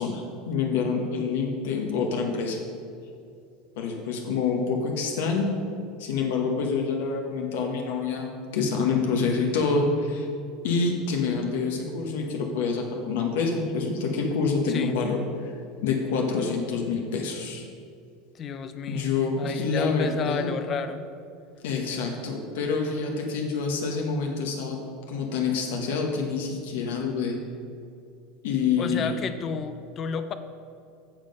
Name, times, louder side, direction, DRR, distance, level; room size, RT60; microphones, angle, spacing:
voice 1, 0.0-2.6 3.8-5.6 6.0-10.3 10.6-15.5 15.8-17.6 18.9-20.5 21.6-24.8 25.1-27.3 28.4-29.2, left 4 dB, 85° left, 1 dB, 1.1 m, -27 dB
voice 2, 18.4-21.0 28.8-30.3, left 6 dB, 25° left, 10 dB, 0.4 m, -31 dB
7.4 x 7.2 x 5.3 m, 2.4 s
supercardioid pair, 175°, 0 cm